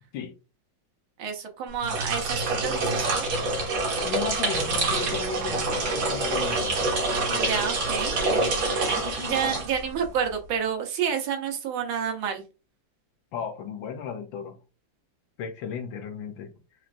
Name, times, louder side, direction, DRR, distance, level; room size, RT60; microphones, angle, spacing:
voice 1, 1.2-3.3 7.3-8.1 9.3-12.4, right 7 dB, 90° right, 1.7 m, -29 dB
sound 1, 1.7-10.1, right 2 dB, 60° right, 1.4 m, -26 dB
voice 2, 4.0-6.9 7.3-7.5 8.1-8.7 13.3-14.6 15.4-16.5, left 7 dB, 75° left, 1.6 m, -35 dB
4.2 x 3.1 x 2.5 m
omnidirectional pair, 2.2 m